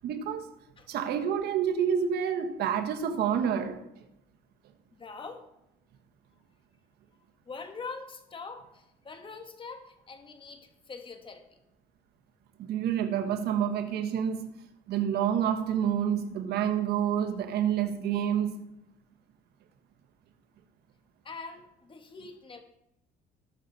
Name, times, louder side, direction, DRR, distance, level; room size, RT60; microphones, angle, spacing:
voice 1, 0.0-0.5 0.9-3.8 12.6-14.5 14.9-18.6, right 8 dB, 70° right, 1.5 m, -28 dB
voice 2, 5.0-5.4 7.5-11.4 21.2-22.6, left 4 dB, 30° left, 1.9 m, -43 dB
19.5 x 6.8 x 4.3 m
cardioid pair, 110°, 17 cm